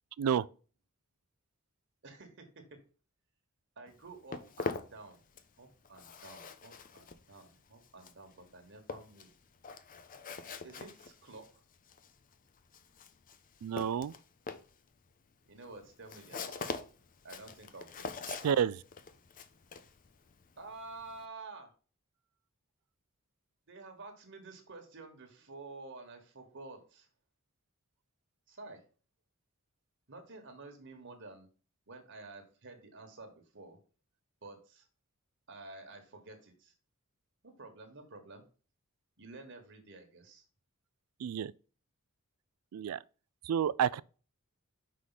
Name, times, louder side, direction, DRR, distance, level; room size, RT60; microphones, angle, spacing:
voice 1, 2.0-2.8 3.8-5.2 5.6-9.3 10.6-11.6 15.5-16.7 17.2-18.6 20.6-21.7 23.7-27.1 28.5-28.8 30.1-31.5 31.9-33.8 34.4-34.9 35.5-36.7 37.4-38.4 39.2-40.4, right 3 dB, 60° right, 1.4 m, -50 dB
Walk footsteps, 3.9-5.6 5.8-21.2, left 4 dB, 40° left, 0.6 m, -44 dB
voice 2, 13.6-14.1 18.4-18.8 41.2-41.5 42.7-43.0 43.4-44.0, right 8 dB, 85° right, 0.3 m, -30 dB
5.7 x 4.8 x 4.0 m
head